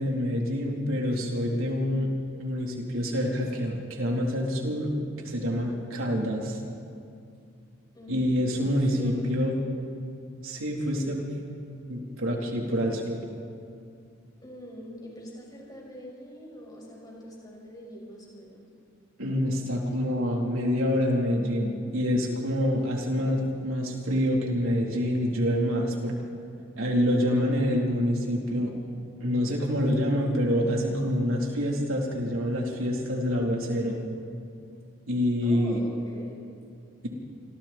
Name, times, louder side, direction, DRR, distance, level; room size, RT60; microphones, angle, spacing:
voice 1, 0.0-2.1 2.4-4.9 5.2-6.6 8.1-9.5 10.4-11.2 11.9-13.2 19.2-26.2 26.8-28.7 29.2-34.0 35.1-35.8, equal, 85° right, -1 dB, 3.9 m, -26 dB
voice 2, 7.9-8.3 8.9-9.4 14.4-18.7 35.4-36.3, equal, 20° left, -3 dB, 6.2 m, -43 dB
28.5 x 25.5 x 4.5 m, 2.4 s
head